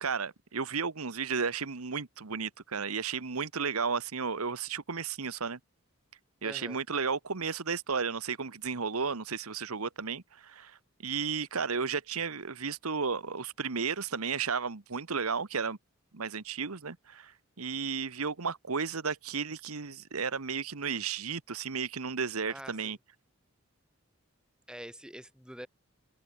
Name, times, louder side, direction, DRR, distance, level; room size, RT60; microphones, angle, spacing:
voice 1, 0.0-5.6 6.4-15.8 16.1-17.3 17.6-23.0, right 5 dB, 85° right, 1.3 m, -33 dB
voice 2, 6.4-6.8 22.5-23.0 24.7-25.7, equal, 5° right, 6.1 m, -45 dB
head